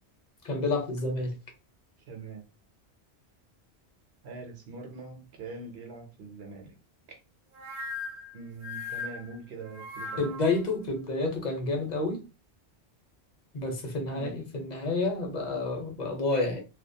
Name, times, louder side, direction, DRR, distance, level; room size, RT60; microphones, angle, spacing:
voice 1, 0.4-1.3 10.2-12.2 13.5-16.6, left 3 dB, 45° left, 0.7 m, -29 dB
voice 2, 2.1-2.4 4.2-6.8 7.1-7.2 8.3-10.3 14.2-14.4, right 3 dB, 75° right, 0.8 m, -43 dB
sound 1, 7.5-10.6, left 3 dB, 55° right, 0.3 m, -39 dB
2.3 x 2.2 x 2.6 m
omnidirectional pair, 1.1 m